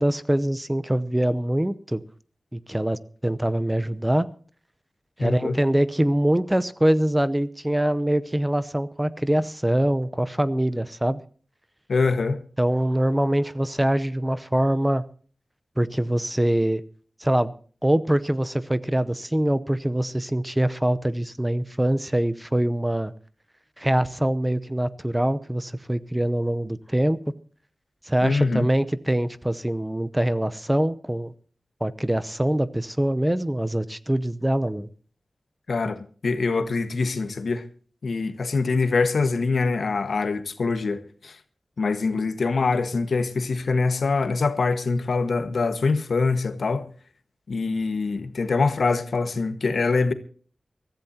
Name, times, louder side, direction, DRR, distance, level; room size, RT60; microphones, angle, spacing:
voice 1, 0.0-2.0 2.5-4.3 5.2-11.2 12.6-15.0 15.8-16.8 17.2-17.5 17.8-23.1 23.8-27.2 28.1-31.3 31.8-34.9, right 1 dB, 10° right, 0.8 m, -24 dB
voice 2, 5.2-5.6 11.9-12.4 28.2-28.7 35.7-37.6 38.0-41.4 41.8-46.8 47.5-50.1, left 4 dB, 80° left, 1.5 m, -24 dB
23.5 x 14.5 x 2.9 m
wide cardioid pair, 110°, 0 cm